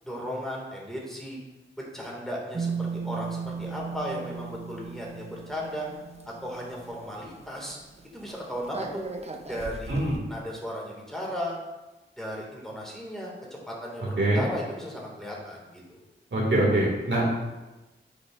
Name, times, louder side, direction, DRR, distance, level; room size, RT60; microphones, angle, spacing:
voice 1, 0.0-1.4 1.9-5.9 6.3-7.8 8.1-9.0 9.5-11.6 12.2-16.0, equal, ahead, -3 dB, 2.1 m, -36 dB
sound 1, 2.5-7.2 7.6-7.7 8.0-10.2, right 5 dB, 30° right, 0.7 m, -36 dB
voice 2, 16.3-17.2, right 1 dB, 65° right, -4 dB, 2.3 m, -23 dB
9.5 x 5.2 x 2.5 m, 1.1 s
cardioid pair, 60°, 21 cm